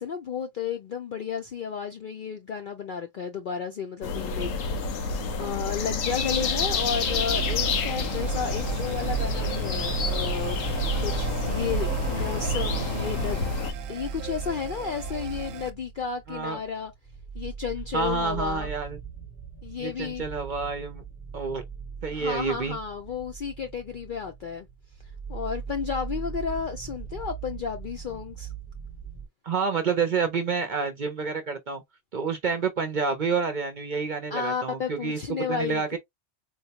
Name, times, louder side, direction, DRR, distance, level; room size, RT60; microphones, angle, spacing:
voice 1, 0.0-4.5 4.8-10.6 11.0-13.4 13.9-16.9 17.3-18.7 19.6-20.2 22.1-24.7 25.3-28.5 34.3-36.0, left 6 dB, 60° left, 0.5 m, -32 dB
sound 1, 4.0-13.7, left 4 dB, 90° left, 1.1 m, -29 dB
sound 2, 6.1-15.7, right 7 dB, 90° right, 1.0 m, -34 dB
sound 3, 10.0-29.3, right 6 dB, 10° left, 0.7 m, -40 dB
voice 2, 16.3-16.6 17.9-19.0 19.8-21.0 21.3-21.6 22.0-22.8 29.4-31.8 32.1-35.2 35.5-36.0, right 5 dB, 50° right, 0.6 m, -28 dB
3.9 x 2.1 x 2.8 m
omnidirectional pair, 1.3 m